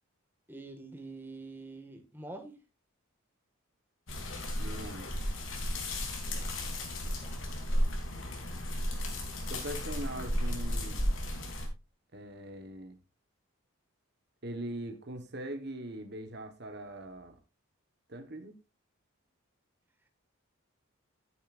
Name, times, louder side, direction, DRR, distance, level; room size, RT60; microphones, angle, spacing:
voice 1, 0.5-2.6 6.3-6.8 7.2-7.4, right 2 dB, 10° right, 4 dB, 1.9 m, -46 dB
sound 1, 4.1-11.7, equal, 65° left, 3.5 m, -34 dB
voice 2, 4.6-5.1 9.5-11.0 12.1-13.0 14.4-17.4 18.1-18.5, right 1 dB, 50° right, 7 dB, 1.4 m, -41 dB
12.5 x 9.5 x 2.6 m, 0.27 s
head